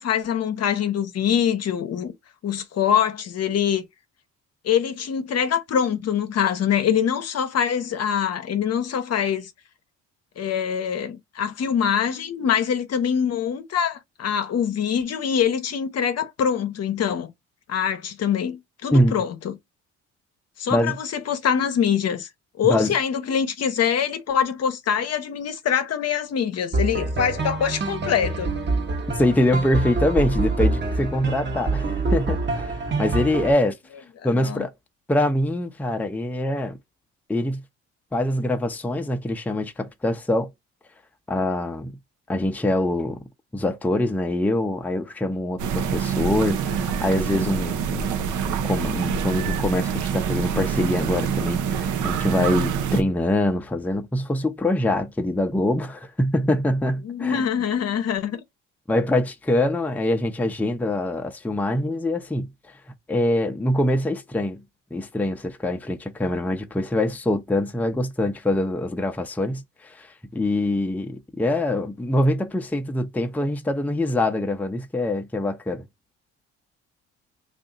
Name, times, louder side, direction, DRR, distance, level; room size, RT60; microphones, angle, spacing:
voice 1, 0.0-2.1 2.4-3.8 4.6-9.5 10.4-17.3 17.7-19.5 20.6-22.3 22.6-28.5 34.3-34.6 57.0-58.4, left 8 dB, 55° left, 0.8 m, -24 dB
voice 2, 18.9-19.2 20.7-21.0 22.6-22.9 29.2-33.8 34.2-34.7 35.1-36.8 37.3-37.6 38.1-40.5 41.3-41.9 42.3-43.2 43.5-57.5 58.9-62.5 63.1-64.6 64.9-75.8, left 1 dB, 5° left, 0.6 m, -24 dB
sound 1, 26.7-33.5, right 2 dB, 35° right, 1.0 m, -26 dB
sound 2, 45.6-53.0, right 7 dB, 75° right, 0.7 m, -26 dB
2.6 x 2.5 x 3.8 m
supercardioid pair, 75°, 31 cm